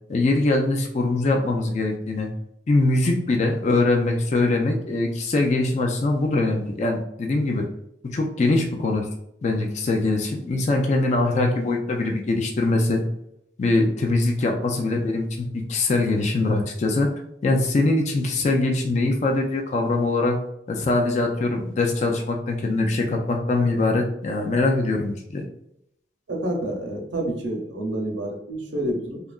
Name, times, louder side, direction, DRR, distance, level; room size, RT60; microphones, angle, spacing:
voice 1, 0.1-2.3 2.7-7.7 8.0-9.1 9.4-13.0 13.6-17.1 17.4-20.4 20.7-25.4, left 2 dB, 40° left, 1 dB, 0.3 m, -22 dB
voice 2, 26.3-29.2, right 1 dB, 85° right, 1 dB, 0.6 m, -28 dB
2.7 x 2.3 x 2.3 m, 0.78 s
head